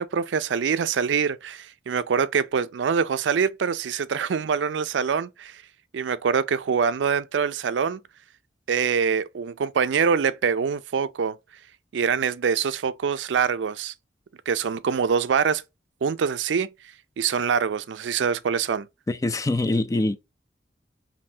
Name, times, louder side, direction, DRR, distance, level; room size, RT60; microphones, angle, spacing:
voice 1, 0.0-5.6 5.9-8.0 8.7-11.3 11.9-13.9 14.5-15.6 16.0-16.7 17.2-18.9, right 6 dB, 85° right, 0.4 m, -24 dB
voice 2, 19.1-20.2, left 2 dB, 20° left, 0.4 m, -24 dB
5.3 x 2.7 x 2.7 m
head